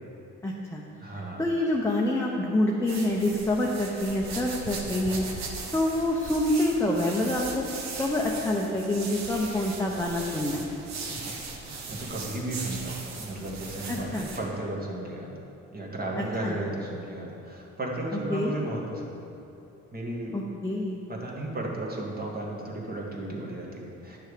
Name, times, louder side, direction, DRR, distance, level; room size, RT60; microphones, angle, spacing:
voice 1, 0.4-0.8 1.1-7.7 8.0-10.7 13.9-14.3 16.1-16.6 18.1-18.5 20.3-21.0, left 1 dB, 10° left, -2 dB, 0.9 m, -27 dB
voice 2, 1.0-1.4 11.2-15.4 15.7-19.2 19.9-20.4 21.1-24.2, right 1 dB, 30° right, -2 dB, 1.9 m, -34 dB
sound 1, 2.9-14.4, right 4 dB, 65° right, 1.3 m, -38 dB
9.9 x 6.4 x 5.1 m, 2.9 s
cardioid pair, 90°, 30 cm